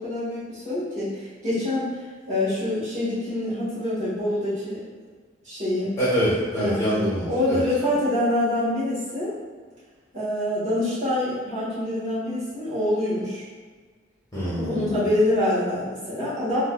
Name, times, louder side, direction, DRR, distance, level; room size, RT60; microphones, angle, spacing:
voice 1, 0.0-1.9 2.3-4.8 5.4-6.0 6.6-6.8 7.3-9.3 10.1-13.4 14.5-16.6, left 1 dB, 35° right, -12 dB, 1.5 m, -25 dB
voice 2, 6.0-7.6 14.3-14.9, equal, 15° left, -11 dB, 1.1 m, -25 dB
3.7 x 2.5 x 2.3 m, 1.5 s
head